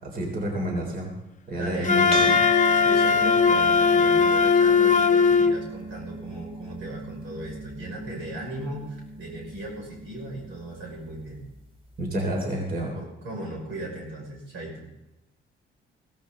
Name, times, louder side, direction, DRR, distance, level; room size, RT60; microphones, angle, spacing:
voice 1, 0.0-1.1 1.5-2.3 12.0-12.9, right 1 dB, 50° right, 0 dB, 3.6 m, -29 dB
voice 2, 1.5-2.3 2.7-11.5 12.9-14.9, right 1 dB, 85° right, -1 dB, 5.6 m, -37 dB
Wind instrument woodwind instrument, 1.8-5.6, left 5 dB, 40° left, 0.7 m, -19 dB
sound 1, 2.1-10.8, left 1 dB, 30° right, 2.8 m, -35 dB
16.0 x 14.5 x 3.8 m, 0.94 s
cardioid pair, 90°, 20 cm